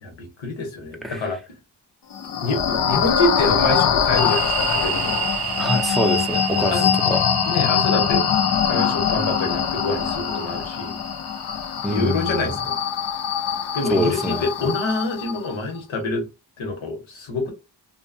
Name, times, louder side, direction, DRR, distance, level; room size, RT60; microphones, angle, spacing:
voice 1, 0.0-1.4 2.4-5.3 6.7-6.9 7.4-8.2 8.6-11.0 11.9-12.8 13.7-16.3 16.6-17.5, left 2 dB, 85° left, 1.0 m, -26 dB
sound 1, 2.1-15.5, left 8 dB, 60° left, 0.5 m, -23 dB
sound 2, 4.2-11.6, right 11 dB, 55° right, 0.5 m, -31 dB
voice 2, 5.6-6.7 7.1-7.2 11.8-12.5 13.9-14.4, equal, ahead, 0.6 m, -24 dB
2.8 x 2.2 x 2.6 m
wide cardioid pair, 70°, 46 cm